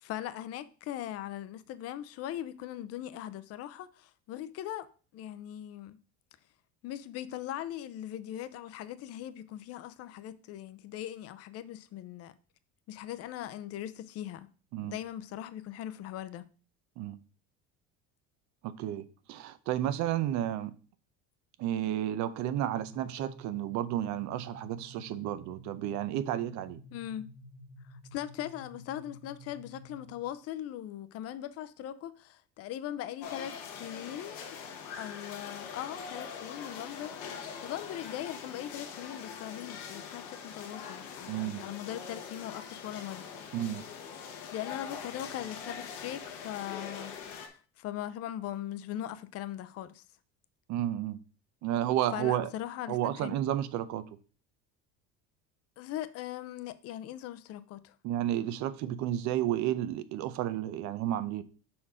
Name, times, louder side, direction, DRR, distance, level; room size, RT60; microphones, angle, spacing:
voice 1, 0.0-4.9 5.1-6.0 6.8-12.3 12.9-14.5 14.8-16.5 26.9-27.3 27.8-34.6 34.9-43.2 44.5-47.1 47.5-50.0 52.1-53.4 55.8-58.0, left 12 dB, 50° left, 0.6 m, -40 dB
voice 2, 18.6-20.8 21.6-26.8 41.3-41.6 43.5-43.8 50.7-51.2 51.6-52.5 52.9-54.0 58.0-61.4, right 12 dB, 60° right, 0.7 m, -32 dB
sound 1, 22.8-30.3, left 1 dB, 5° right, 1.3 m, -51 dB
sound 2, 33.2-47.5, left 6 dB, 90° left, 1.3 m, -43 dB
5.7 x 4.4 x 4.9 m
cardioid pair, 130°, 32 cm